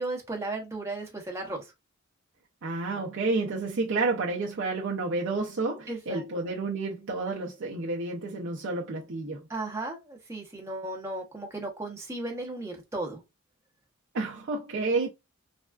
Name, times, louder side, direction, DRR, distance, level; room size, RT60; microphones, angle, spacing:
voice 1, 0.0-1.7 5.9-6.2 9.5-13.2, right 2 dB, 15° right, 0.9 m, -35 dB
voice 2, 2.6-9.5 14.1-15.1, right 3 dB, 60° right, 0.5 m, -30 dB
3.3 x 2.3 x 2.3 m
head